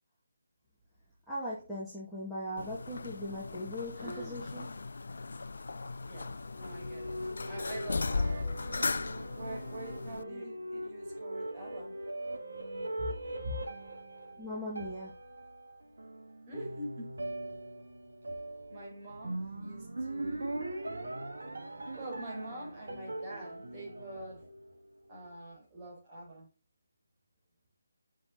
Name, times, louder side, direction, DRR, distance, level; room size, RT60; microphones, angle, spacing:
voice 1, 1.3-4.7 14.4-15.1, equal, ahead, 2.2 m, -39 dB
sound 1, 2.6-10.2, left 3 dB, 65° left, 0.5 m, -37 dB
voice 2, 4.0-4.4 6.0-7.2 7.5-12.0 13.0-13.6 16.5-17.1 18.7-20.7 21.9-24.5 25.1-26.5, right 1 dB, 20° right, 4.7 m, -45 dB
sound 2, 6.3-24.9, right 1 dB, 70° right, 1.9 m, -41 dB
7.6 x 6.2 x 4.1 m
figure-of-eight pair, 155°, 0 cm